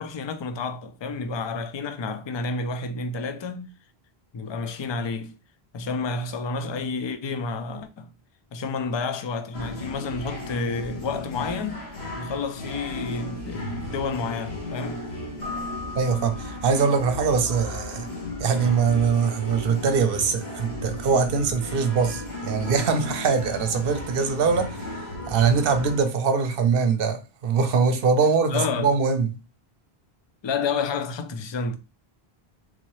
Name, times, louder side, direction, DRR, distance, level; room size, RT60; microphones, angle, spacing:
voice 1, 0.0-3.7 4.3-5.3 5.7-8.1 8.5-11.9 12.1-15.0 28.5-28.9 30.4-31.8, left 4 dB, 50° left, 0.3 m, -30 dB
sound 1, 9.5-26.0, left 1 dB, 85° left, 1.4 m, -35 dB
Keyboard (musical), 15.4-17.2, left 3 dB, 15° right, 0.4 m, -38 dB
voice 2, 16.0-18.1 18.4-24.8 25.3-29.3, right 5 dB, 65° right, 0.8 m, -22 dB
3.8 x 2.7 x 3.0 m
omnidirectional pair, 1.0 m